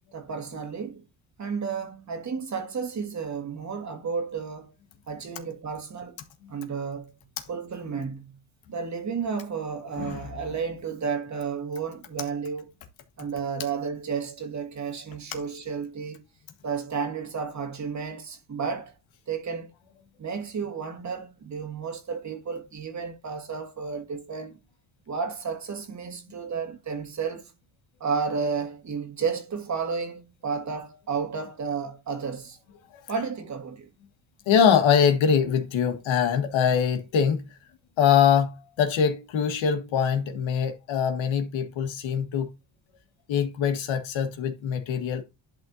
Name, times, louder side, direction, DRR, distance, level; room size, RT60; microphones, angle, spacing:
voice 1, 0.1-1.0 1.4-4.7 5.1-6.2 6.5-7.1 7.5-8.4 8.7-12.7 13.2-16.2 16.6-18.9 19.3-19.7 20.2-24.5 25.1-27.5 28.0-32.6 33.1-33.9, right 5 dB, 35° right, 1.8 m, -32 dB
voice 2, 10.0-10.3 34.5-37.4 38.0-42.5 43.3-45.2, left 7 dB, 75° left, 1.7 m, -23 dB
11.5 x 3.9 x 2.8 m
cardioid pair, 105°, 48 cm